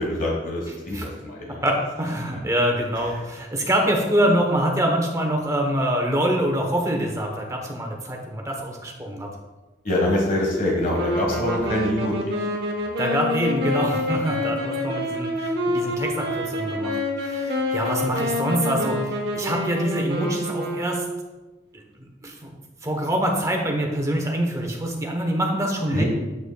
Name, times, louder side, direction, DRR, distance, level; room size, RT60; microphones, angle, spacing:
voice 1, 0.0-1.6 9.8-12.3 25.9-26.0, left 1 dB, 50° left, -2 dB, 1.3 m, -24 dB
voice 2, 1.6-9.3 13.0-21.0 21.7-21.8 22.2-22.5 22.8-26.0, right 1 dB, 20° right, 1 dB, 1.0 m, -25 dB
sound 1, 10.9-21.4, left 1 dB, 65° right, 1.1 m, -27 dB
8.2 x 5.9 x 2.3 m, 1.1 s
head